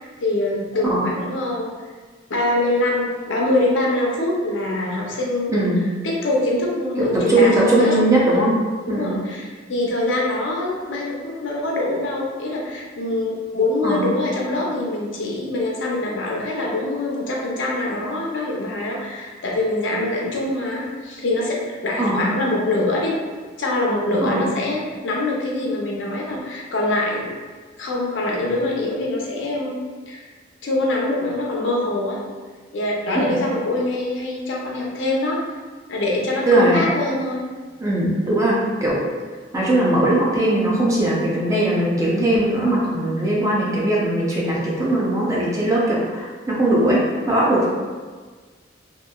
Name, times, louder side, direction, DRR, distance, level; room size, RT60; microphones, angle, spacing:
voice 1, 0.2-1.7 2.3-5.7 6.0-8.0 8.9-23.2 23.6-27.3 27.8-30.2 30.6-32.2 32.7-35.4 35.9-37.4, left 2 dB, 70° left, -2 dB, 0.5 m, -24 dB
voice 2, 5.5-5.8 7.0-8.6 8.9-9.2 13.8-14.2 22.0-22.3 24.2-24.5 33.1-33.4 36.5-36.8 37.8-39.0 39.5-47.7, right 1 dB, 15° right, -5 dB, 0.5 m, -19 dB
2.9 x 2.5 x 2.3 m, 1.5 s
head